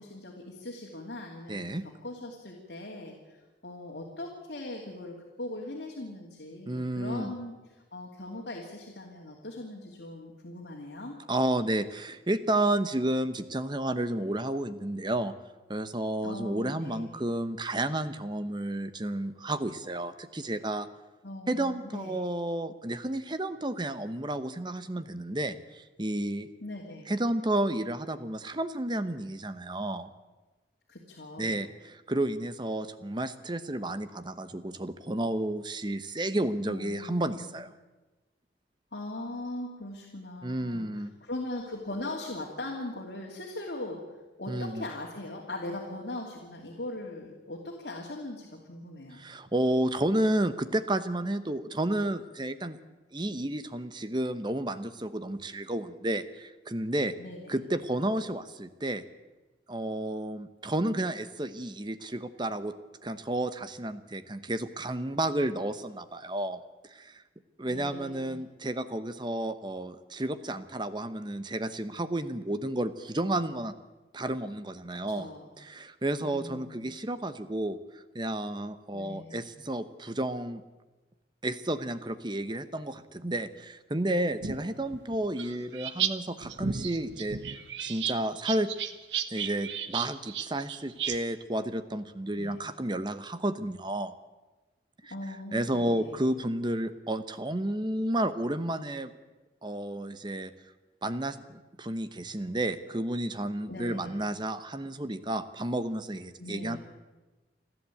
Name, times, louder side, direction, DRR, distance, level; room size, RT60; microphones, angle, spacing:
voice 1, 0.0-1.6 2.0-3.4 3.6-11.2 16.2-17.2 21.2-22.2 26.6-27.1 30.9-31.6 36.7-37.6 38.9-49.2 57.2-57.5 67.7-68.4 75.1-75.5 76.2-76.9 78.9-79.4 92.4-92.7 95.1-96.2 103.7-104.2 106.4-106.8, left 1 dB, 60° left, -1 dB, 2.9 m, -40 dB
voice 2, 1.5-1.8 6.7-7.3 11.3-15.3 15.7-20.9 21.5-26.5 27.1-30.1 31.4-37.7 40.4-41.1 44.5-44.8 49.1-52.8 53.1-57.1 57.5-59.0 59.7-62.7 63.0-66.6 66.9-67.2 67.6-73.7 74.1-75.3 75.6-80.6 81.4-87.4 87.8-88.7 89.3-94.1 95.0-95.1 95.5-99.1 99.6-100.5 101.0-106.8, right 1 dB, 25° right, 12 dB, 1.0 m, -31 dB
sound 1, 84.4-86.1 86.4-91.2, right 8 dB, 80° right, 1.3 m, -34 dB
29.0 x 11.0 x 8.6 m, 1.2 s
head